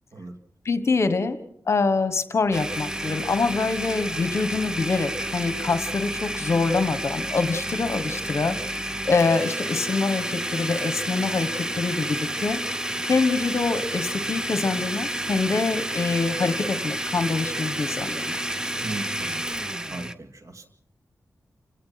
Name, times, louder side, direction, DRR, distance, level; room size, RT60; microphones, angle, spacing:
voice 1, 0.6-1.4 1.7-12.6 13.1-18.4, left 4 dB, 50° left, 10 dB, 1.4 m, -25 dB
Domestic sounds home sounds, 2.5-20.1, right 1 dB, 10° right, 0.9 m, -30 dB
voice 2, 18.7-19.5 19.9-20.7, right 2 dB, 60° right, 6 dB, 2.3 m, -37 dB
29.0 x 17.5 x 5.9 m, 0.67 s
wide cardioid pair, 130°, 6 cm